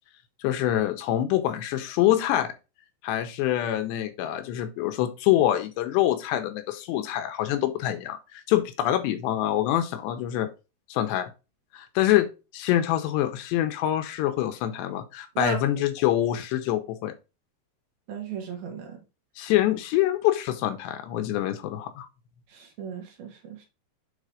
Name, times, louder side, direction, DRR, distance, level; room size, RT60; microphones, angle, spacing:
voice 1, 0.4-2.5 3.0-8.2 8.5-10.5 10.9-11.3 11.7-12.3 12.5-17.1 19.4-22.1, left 13 dB, 85° left, 3.0 m, -25 dB
voice 2, 18.1-19.0 22.5-23.6, right 6 dB, 65° right, 3.3 m, -34 dB
7.4 x 3.9 x 4.8 m
omnidirectional pair, 5.1 m